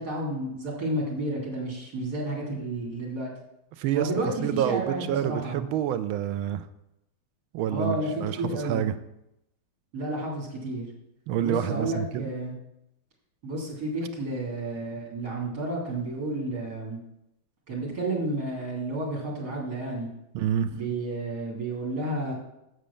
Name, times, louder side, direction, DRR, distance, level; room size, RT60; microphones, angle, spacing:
voice 1, 0.0-3.3 3.9-5.6 7.7-8.8 9.9-10.9 11.4-12.5 13.4-17.0 17.7-20.1 20.7-22.3, right 1 dB, 50° right, -3 dB, 3.4 m, -31 dB
voice 2, 3.8-4.1 4.4-6.6 7.5-8.4 8.7-8.9 11.3-12.3 20.3-20.7, right 10 dB, 85° right, 11 dB, 1.5 m, -27 dB
7.7 x 6.3 x 6.9 m, 0.85 s
omnidirectional pair, 2.3 m